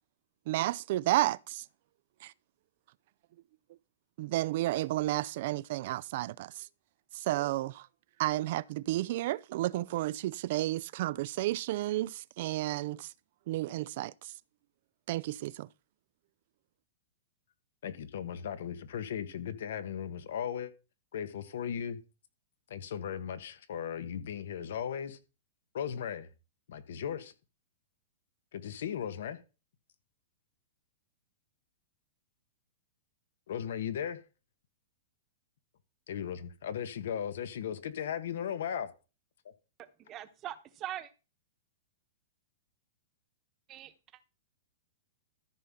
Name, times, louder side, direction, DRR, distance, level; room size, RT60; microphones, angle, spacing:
voice 1, 0.5-1.6 2.2-2.3 4.2-6.7 7.1-7.9 8.2-13.1 13.5-14.3 15.1-15.7, right 16 dB, 55° right, 0.4 m, -32 dB
voice 2, 17.8-20.7 21.1-22.0 22.7-25.2 25.7-26.3 26.7-27.3 28.5-29.4 33.5-34.2 36.1-38.9, left 8 dB, 70° left, 1.3 m, -37 dB
voice 3, 39.8-41.1 43.7-43.9, right 12 dB, 30° right, 1.1 m, -42 dB
13.5 x 5.6 x 3.7 m
hypercardioid pair, 130°, 0 cm